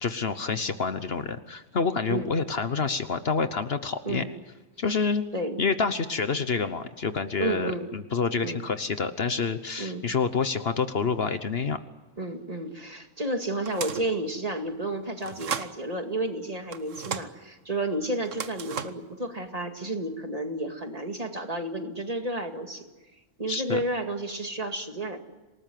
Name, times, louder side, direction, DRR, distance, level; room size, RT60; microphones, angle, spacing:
voice 1, 0.0-4.2 4.8-5.2 5.6-11.8 23.5-23.8, left 5 dB, 55° left, 11 dB, 1.2 m, -28 dB
voice 2, 7.4-7.9 8.4-8.6 9.8-10.0 12.2-22.8 23.4-25.2, right 1 dB, 30° right, 5 dB, 2.2 m, -31 dB
sound 1, 13.7-14.2 15.2-15.7 16.7-17.3 18.3-19.1, right 7 dB, 85° right, 1.5 m, -34 dB
27.5 x 19.0 x 9.3 m, 1.2 s
omnidirectional pair, 1.3 m